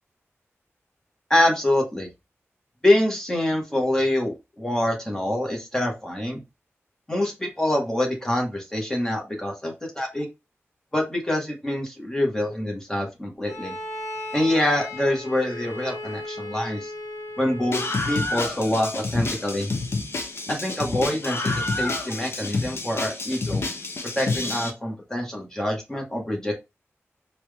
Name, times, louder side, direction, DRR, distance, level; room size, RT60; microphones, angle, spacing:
voice 1, 1.3-2.1 2.8-6.4 7.1-10.3 10.9-13.8 14.3-16.9 17.4-19.7 20.5-23.6 24.1-26.5, left 1 dB, 10° left, 0 dB, 1.7 m, -25 dB
Bowed string instrument, 13.4-18.0, left 2 dB, 80° left, 1.1 m, -36 dB
Screaming, 17.7-24.7, left 3 dB, 60° left, 0.9 m, -28 dB
4.4 x 2.7 x 3.5 m, 0.24 s
wide cardioid pair, 100°, 5 cm